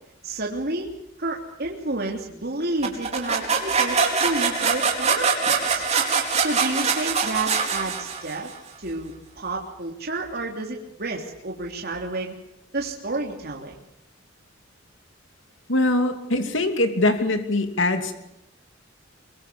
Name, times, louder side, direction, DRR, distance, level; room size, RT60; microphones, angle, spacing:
voice 1, 0.2-0.9 1.2-5.8 6.4-8.5 8.8-12.4 12.7-13.8, right 2 dB, 55° right, 0 dB, 3.3 m, -30 dB
sound 1, 2.8-8.5, right 5 dB, 35° right, 4.6 m, -23 dB
voice 2, 15.7-18.1, left 2 dB, 70° left, 6 dB, 2.8 m, -22 dB
24.5 x 24.5 x 7.0 m, 0.84 s
head